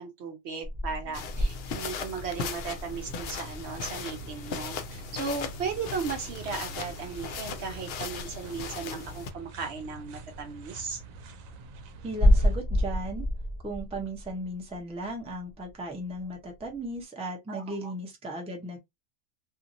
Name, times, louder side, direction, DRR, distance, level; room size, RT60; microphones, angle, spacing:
voice 1, 0.0-11.0 17.5-17.9, right 5 dB, 60° right, 0.8 m, -36 dB
sound 1, 0.6-6.3 6.6-17.0, equal, 30° right, 0.9 m, -31 dB
sound 2, 1.1-9.3, left 5 dB, 65° left, 0.6 m, -38 dB
sound 3, 2.9-12.6, right 3 dB, 90° right, 1.0 m, -47 dB
voice 2, 12.0-13.3 13.6-18.8, right 1 dB, 5° right, 0.5 m, -36 dB
2.7 x 2.5 x 2.6 m
omnidirectional pair, 1.4 m